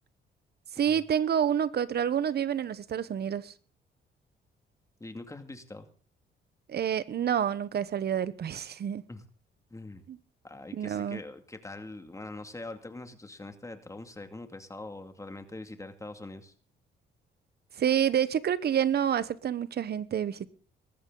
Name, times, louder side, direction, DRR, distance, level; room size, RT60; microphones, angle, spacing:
voice 1, 0.8-3.5 6.7-9.0 10.1-10.2 10.7-11.2 17.8-20.5, right 9 dB, 55° right, 1.0 m, -28 dB
voice 2, 5.0-5.9 9.1-9.2 9.7-10.0 10.4-16.5, left 2 dB, 15° left, 2.4 m, -43 dB
19.5 x 14.0 x 3.9 m
cardioid pair, 90°, 20 cm